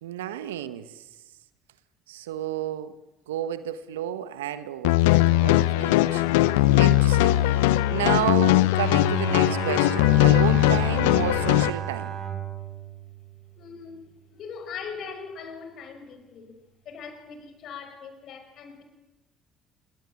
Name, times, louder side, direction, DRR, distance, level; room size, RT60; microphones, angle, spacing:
voice 1, 0.0-1.0 2.1-2.9 3.3-12.2, right 12 dB, 85° right, 13 dB, 1.3 m, -32 dB
sound 1, 4.8-11.7, left 16 dB, 80° left, 0.8 m, -20 dB
Bowed string instrument, 8.7-14.0, right 9 dB, 45° right, 5.9 m, -34 dB
voice 2, 13.6-14.0 14.3-18.8, left 6 dB, 60° left, 8 dB, 5.9 m, -40 dB
27.0 x 21.5 x 9.8 m, 1.1 s
hypercardioid pair, 55°, 0 cm